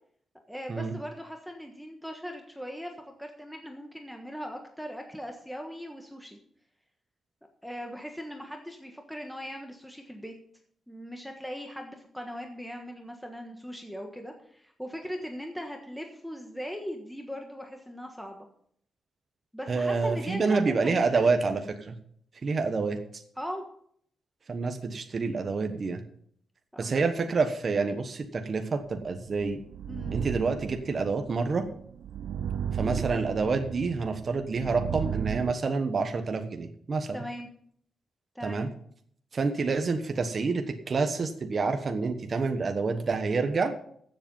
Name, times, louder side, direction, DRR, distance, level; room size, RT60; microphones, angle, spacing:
voice 1, 0.5-6.4 7.6-10.3 10.9-18.5 19.5-21.3 23.4-23.6 26.7-27.0 29.9-30.2 32.8-33.0 37.1-37.5 38.3-38.6, equal, ahead, 3 dB, 1.4 m, -39 dB
voice 2, 19.7-21.6 21.9-22.0 22.4-23.2 24.5-26.0 26.8-29.6 30.1-31.7 32.7-37.2 38.4-38.7 39.3-43.7, right 4 dB, 40° right, 6 dB, 1.2 m, -28 dB
sound 1, 29.1-35.5, right 9 dB, 80° right, 0.5 m, -35 dB
14.5 x 7.7 x 5.5 m, 0.63 s
wide cardioid pair, 150°, 0 cm